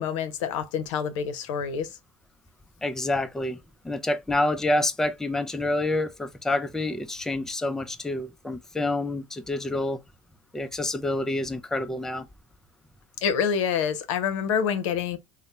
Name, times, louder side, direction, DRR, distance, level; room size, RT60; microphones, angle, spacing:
voice 1, 0.0-1.9 13.2-15.2, left 7 dB, 85° left, 0.6 m, -27 dB
voice 2, 2.8-3.6 3.8-10.0 10.5-12.3, left 2 dB, 5° left, 0.4 m, -27 dB
2.7 x 2.1 x 3.2 m
supercardioid pair, 95°, 16 cm